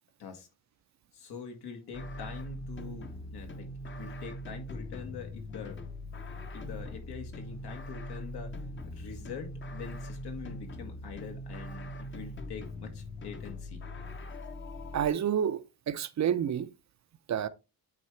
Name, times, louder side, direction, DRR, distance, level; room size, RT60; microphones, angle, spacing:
voice 1, 1.1-3.7 4.0-5.8 6.5-13.8, left 6 dB, 85° left, 1.6 m, -44 dB
sound 1, 1.9-15.1, left 1 dB, 30° left, 0.7 m, -41 dB
voice 2, 14.9-16.7 17.3-17.5, right 9 dB, 45° right, 0.5 m, -29 dB
8.5 x 3.7 x 3.1 m
cardioid pair, 115°, 38 cm